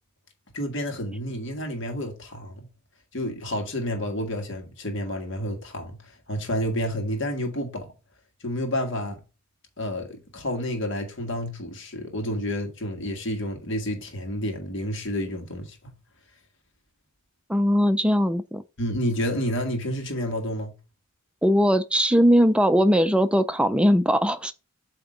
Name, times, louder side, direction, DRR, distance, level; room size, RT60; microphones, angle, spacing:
voice 1, 0.5-2.7 3.1-6.0 6.3-7.9 8.4-9.2 9.8-15.8 18.8-20.7, equal, 55° left, 1.6 m, -29 dB
voice 2, 17.5-18.6 21.4-24.5, equal, 5° right, 0.4 m, -20 dB
8.1 x 2.9 x 4.9 m
head